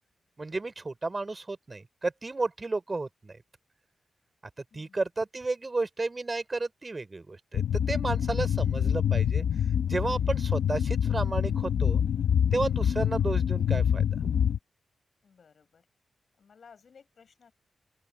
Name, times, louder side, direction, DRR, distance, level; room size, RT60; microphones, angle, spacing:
voice 1, 0.4-3.4 4.7-9.4 9.9-12.0 12.5-14.0, right 3 dB, 40° right, 3.7 m, -32 dB
sound 1, 7.5-14.6, left 8 dB, 90° left, 0.9 m, -26 dB
voice 2, 15.2-15.8 16.4-17.5, left 6 dB, 70° left, 5.6 m, -57 dB
open air
cardioid pair, 55°, 0 cm